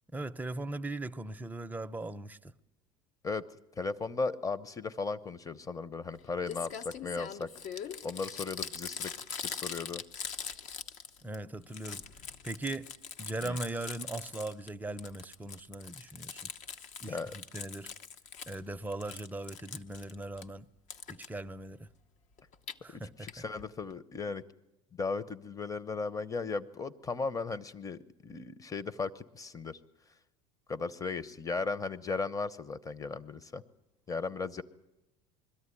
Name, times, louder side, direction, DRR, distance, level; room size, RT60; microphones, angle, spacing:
voice 1, 0.1-2.5 11.2-12.1 12.4-12.9 13.2-16.5 17.0-17.9 18.5-20.7 21.1-21.9 22.8-23.3, right 2 dB, 10° right, 0.6 m, -39 dB
voice 2, 3.8-7.5 8.0-9.1 9.4-10.0 13.4-13.6 17.0-17.3 22.9-24.4 24.9-29.8 30.7-33.6 34.1-34.6, left 4 dB, 20° left, 0.9 m, -36 dB
Crumpling crinkling, 6.1-6.2 6.5-11.4 11.6-14.7 15.0-18.6 18.9-20.4 20.9-21.3 22.4-22.7 23.3-23.4 23.6-23.7 23.9-24.0, left 7 dB, 55° left, 1.0 m, -42 dB
22.0 x 13.5 x 9.9 m
supercardioid pair, 100°, 16 cm